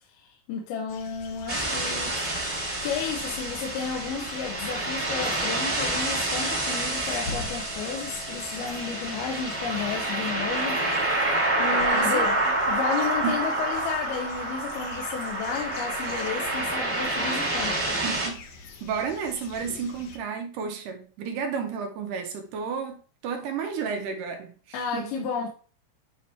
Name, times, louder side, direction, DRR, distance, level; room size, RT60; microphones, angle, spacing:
voice 1, 0.0-2.4 2.8-10.8 11.6-17.8 24.7-25.5, left 6 dB, 85° left, 2.7 m, -32 dB
sound 1, 0.9-20.2, left 4 dB, 70° left, 1.9 m, -44 dB
sound 2, 1.5-18.3, right 2 dB, 20° right, 1.4 m, -28 dB
Wind instrument woodwind instrument, 5.1-14.0, right 1 dB, 45° right, 1.2 m, -48 dB
voice 2, 11.7-12.2 13.2-13.4 18.0-25.3, right 6 dB, 75° right, 2.0 m, -32 dB
8.5 x 2.9 x 4.3 m
omnidirectional pair, 4.4 m